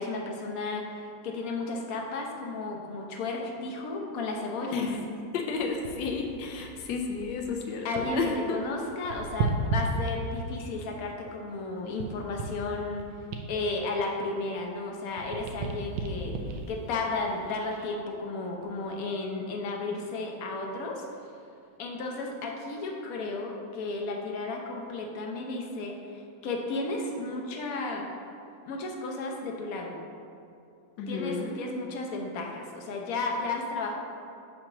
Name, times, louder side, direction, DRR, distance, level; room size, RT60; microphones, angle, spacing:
voice 1, 0.0-4.8 7.8-13.1 13.5-21.0 21.8-28.1 28.6-30.0 31.1-33.9, left 3 dB, 60° left, 1 dB, 1.1 m, -33 dB
voice 2, 4.7-5.0 5.3-8.6 31.0-31.6, left 5 dB, 80° left, 2 dB, 1.4 m, -32 dB
sound 1, 5.5-8.3 8.6-10.7 11.2-14.8 15.1-17.9 18.4-18.6, right 3 dB, 80° right, 1.3 m, -35 dB
8.0 x 2.9 x 5.8 m, 2.5 s
omnidirectional pair, 1.9 m